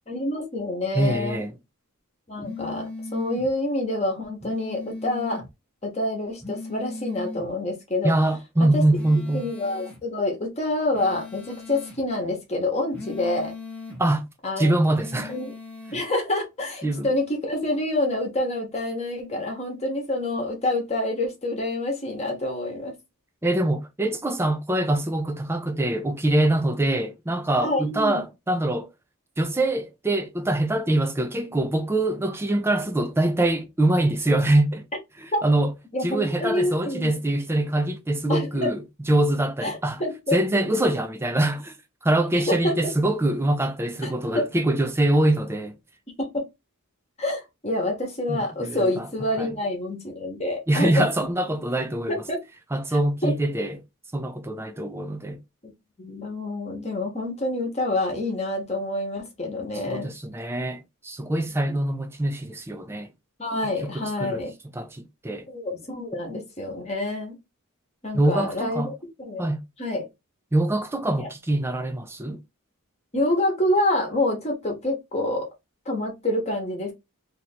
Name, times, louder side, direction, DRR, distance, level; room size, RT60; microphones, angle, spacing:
voice 1, 0.1-1.4 2.3-5.4 5.8-8.1 8.7-8.8 9.3-13.5 14.4-14.7 15.3-15.5 15.9-22.9 27.6-28.2 35.3-35.4 35.9-37.1 38.3-38.7 39.6-40.3 42.5-42.9 44.0-44.5 46.2-46.4 47.2-51.1 52.1-52.4 52.9-53.4 56.0-60.1 61.7-61.8 63.4-64.5 65.5-67.4 68.0-68.9 69.2-69.4 69.8-70.0 71.2-71.3 73.1-75.5 75.9-76.9, left 1 dB, 30° left, 1.0 m, -27 dB
voice 2, 0.9-1.5 8.0-9.5 14.0-14.2 14.6-15.3 16.8-17.1 23.4-28.9 29.4-34.9 35.4-35.7 36.0-38.8 39.1-40.0 40.3-41.8 42.0-45.7 48.3-49.1 49.4-49.5 50.7-52.2 52.7-53.8 54.1-55.4 59.9-63.1 63.8-64.4 64.8-65.5 68.1-68.9 69.4-69.6 70.5-72.4, right 1 dB, 10° right, 0.4 m, -24 dB
sound 1, 2.4-3.5 4.4-5.5 6.4-7.5 8.9-10.0 10.9-12.0 12.9-14.0 14.9-16.0, left 3 dB, 5° left, 0.8 m, -38 dB
2.8 x 2.6 x 4.2 m
head